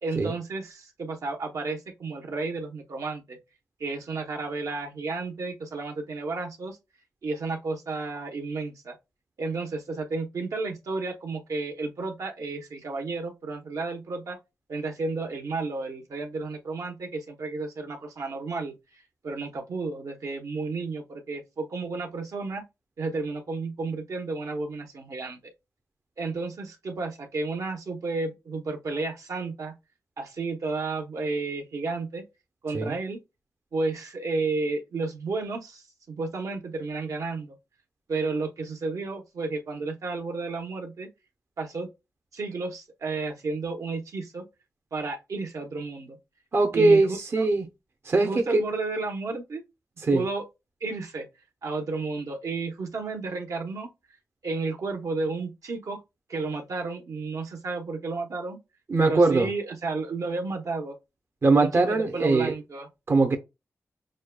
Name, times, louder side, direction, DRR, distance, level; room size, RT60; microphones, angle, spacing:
voice 1, 0.0-3.4 3.8-6.8 7.2-8.9 9.4-14.4 14.7-22.6 23.0-25.4 26.2-29.7 30.2-32.2 32.6-33.2 33.7-37.6 38.1-41.1 41.6-41.9 42.3-44.4 44.9-46.2 46.7-47.0 47.4-47.5 48.2-49.6 50.1-50.4 50.8-51.3 51.6-53.9 54.4-56.0 56.3-58.6 59.0-61.0 61.9-62.9, right 3 dB, 70° right, 1.0 m, -32 dB
voice 2, 46.5-47.7 48.0-48.6 50.0-50.2 58.9-59.5 61.4-62.5 63.1-63.4, right 3 dB, 45° right, 0.7 m, -21 dB
6.3 x 2.3 x 2.2 m
cardioid pair, 65°, 6 cm